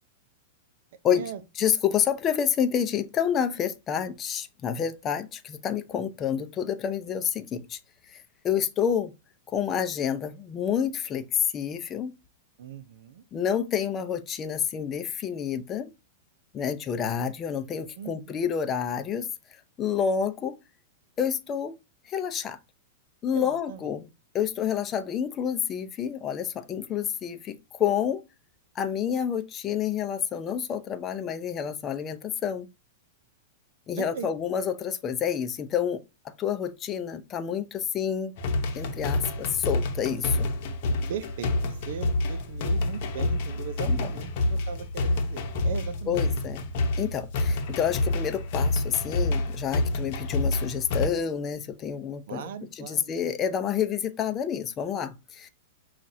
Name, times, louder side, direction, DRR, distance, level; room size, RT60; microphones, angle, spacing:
voice 1, 1.6-7.8 8.1-9.1 9.5-12.1 13.3-15.9 16.5-19.3 19.8-20.5 21.2-21.7 22.1-22.6 23.2-24.1 24.3-28.2 28.8-32.7 33.9-36.0 36.4-38.3 38.8-40.5 43.9-44.1 46.1-46.6 47.0-52.5 52.8-55.5, left 8 dB, 25° left, 0.5 m, -28 dB
voice 2, 12.6-13.2 16.6-16.7 17.1-17.2 17.9-18.4 23.3-23.9 34.0-34.3 41.1-46.4 52.3-53.1, right 8 dB, 70° right, 0.6 m, -39 dB
sound 1, 38.4-51.1, left 2 dB, 55° left, 0.8 m, -28 dB
5.7 x 2.4 x 2.7 m
hypercardioid pair, 140°, 0 cm